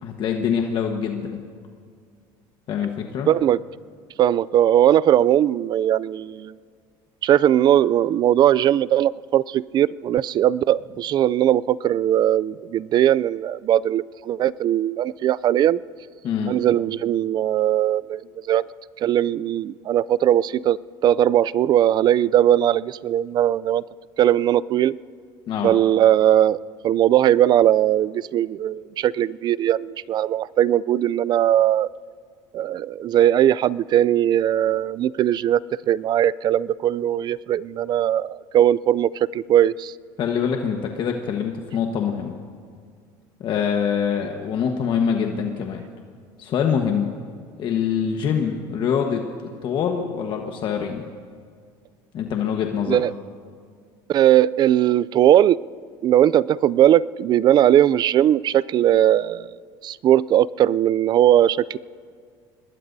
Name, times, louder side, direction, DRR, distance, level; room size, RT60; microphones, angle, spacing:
voice 1, 0.0-1.4 2.7-3.3 16.2-16.6 25.5-25.7 40.2-42.3 43.4-45.8 46.4-47.1 47.6-49.2 49.6-51.0 52.1-53.0, left 7 dB, 50° left, 3 dB, 1.3 m, -24 dB
voice 2, 3.3-3.6 4.2-6.5 7.2-15.8 16.5-18.2 18.5-18.6 19.0-20.8 21.0-23.8 24.2-25.0 25.6-26.6 26.8-31.9 32.5-35.6 35.9-39.9 52.9-53.1 54.1-55.6 56.0-59.5 59.8-61.8, right 11 dB, 45° right, 21 dB, 0.4 m, -19 dB
26.0 x 20.5 x 2.7 m, 2.1 s
supercardioid pair, 115°, 10 cm